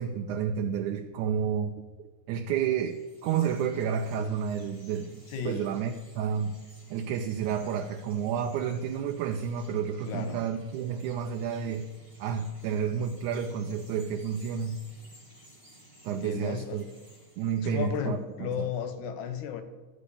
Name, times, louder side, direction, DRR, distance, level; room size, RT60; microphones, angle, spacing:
voice 1, 0.0-1.7 2.0-6.6 6.9-11.9 12.2-14.8 16.0-16.8 17.4-18.7, right 7 dB, 80° right, 4 dB, 2.1 m, -30 dB
Chirp tweet, 2.6-18.2, right 1 dB, 10° left, 2.2 m, -56 dB
voice 2, 5.3-5.7 10.1-10.5 16.1-16.8 17.6-19.6, left 8 dB, 80° left, 9 dB, 2.3 m, -34 dB
13.0 x 5.1 x 8.4 m, 1.3 s
omnidirectional pair, 3.4 m